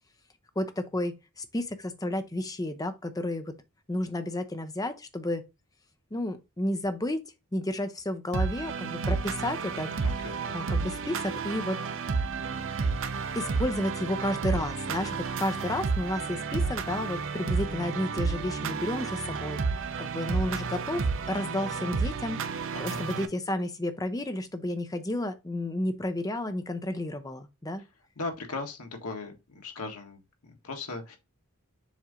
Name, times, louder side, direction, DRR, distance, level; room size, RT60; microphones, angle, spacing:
voice 1, 0.6-3.6 3.9-5.4 6.1-7.2 7.5-9.9 10.5-11.8 13.3-19.6 20.0-27.8, left 1 dB, 15° left, 0.7 m, -32 dB
sound 1, 8.3-23.3, right 4 dB, 60° right, 0.6 m, -31 dB
voice 2, 10.0-10.6 22.7-23.0 28.2-31.2, left 3 dB, 80° left, 1.5 m, -38 dB
7.3 x 2.7 x 4.9 m
head